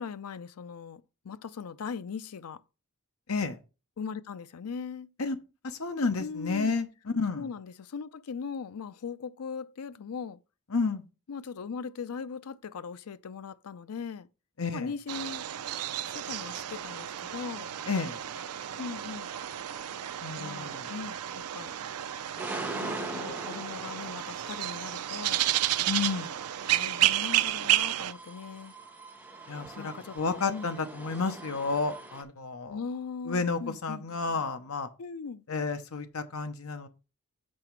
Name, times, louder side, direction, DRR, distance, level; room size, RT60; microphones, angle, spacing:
voice 1, 0.0-2.6 4.0-5.1 6.2-6.8 7.3-10.4 11.3-14.3 14.7-15.4 16.1-17.7 18.8-19.3 20.4-21.7 22.5-25.4 26.6-28.7 29.7-30.7 32.7-34.1 35.0-35.4, left 5 dB, 85° left, 0.5 m, -39 dB
voice 2, 3.3-3.6 5.2-5.4 5.6-7.5 10.7-11.0 14.6-14.9 17.9-18.2 20.2-20.9 25.9-26.4 29.5-32.8 33.3-34.9 35.5-36.9, left 4 dB, 70° left, 0.9 m, -31 dB
sound 1, 15.1-28.1, right 13 dB, 90° right, 0.4 m, -31 dB
sound 2, 16.2-32.2, right 2 dB, 10° right, 1.0 m, -44 dB
7.6 x 4.9 x 4.5 m
head